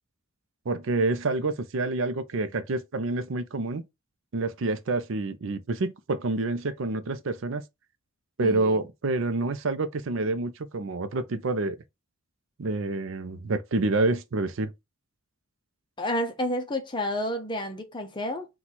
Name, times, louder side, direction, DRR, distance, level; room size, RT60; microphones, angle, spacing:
voice 1, 0.7-3.9 4.3-7.6 8.4-11.8 12.6-14.7, right 2 dB, 65° right, 0.5 m, -28 dB
voice 2, 8.4-8.9 16.0-18.5, left 1 dB, 20° left, 0.6 m, -30 dB
4.4 x 2.3 x 4.1 m
head